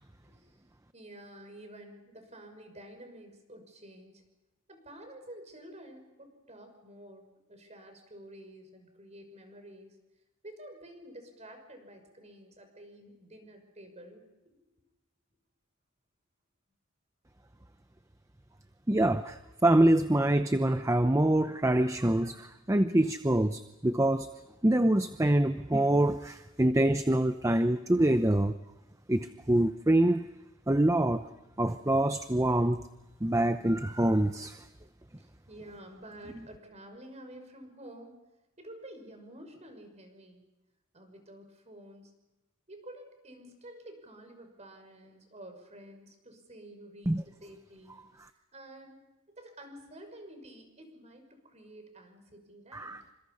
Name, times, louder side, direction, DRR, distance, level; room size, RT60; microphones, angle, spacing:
voice 1, 0.2-0.6 0.9-4.2 4.7-10.0 10.4-14.6 35.1-38.2 38.6-40.4 40.9-42.1 42.7-48.0 48.5-53.0, right 1 dB, 30° right, 5 dB, 6.0 m, -50 dB
voice 2, 18.9-24.3 24.6-28.6 29.1-30.3 30.7-31.3 31.6-32.8 33.2-34.6 47.1-47.2 52.7-53.0, right 1 dB, 15° right, 9 dB, 0.8 m, -25 dB
28.5 x 26.0 x 5.6 m, 1.0 s
head